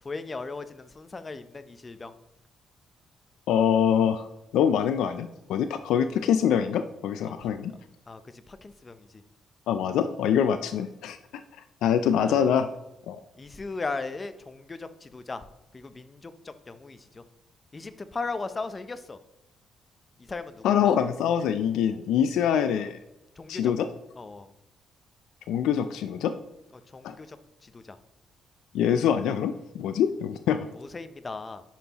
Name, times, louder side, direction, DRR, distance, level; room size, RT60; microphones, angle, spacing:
voice 1, 0.0-2.1 7.2-7.5 8.1-9.2 10.5-10.6 12.2-12.5 13.4-15.5 15.7-17.2 17.7-19.2 20.2-20.9 23.4-23.7 24.2-24.5 26.7-28.0 30.7-31.6, left 3 dB, 30° left, 12 dB, 0.6 m, -38 dB
voice 2, 3.5-4.3 4.5-7.7 9.7-11.2 11.8-12.7 13.1-13.2 20.6-23.0 23.5-23.9 25.5-26.3 27.0-27.1 28.7-30.6, left 8 dB, 85° left, 9 dB, 0.4 m, -24 dB
10.0 x 5.5 x 2.9 m, 0.91 s
cardioid pair, 90°, 0 cm